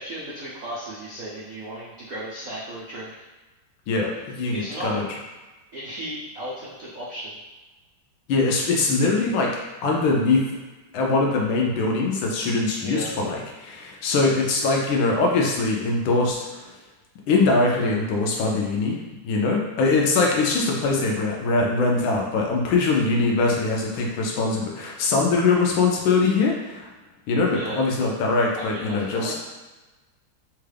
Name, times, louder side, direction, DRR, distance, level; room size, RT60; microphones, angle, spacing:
voice 1, 0.0-3.2 4.5-4.9 5.7-7.4 12.8-13.2 21.6-21.7 27.5-27.9 28.5-29.3, right 1 dB, 90° right, -8 dB, 0.7 m, -35 dB
voice 2, 3.9-5.0 8.3-9.6 9.8-10.5 10.9-16.7 17.3-19.0 19.2-26.9 27.3-29.3, left 3 dB, 75° left, -1 dB, 1.2 m, -22 dB
3.6 x 2.3 x 3.3 m, 1.2 s
omnidirectional pair, 2.3 m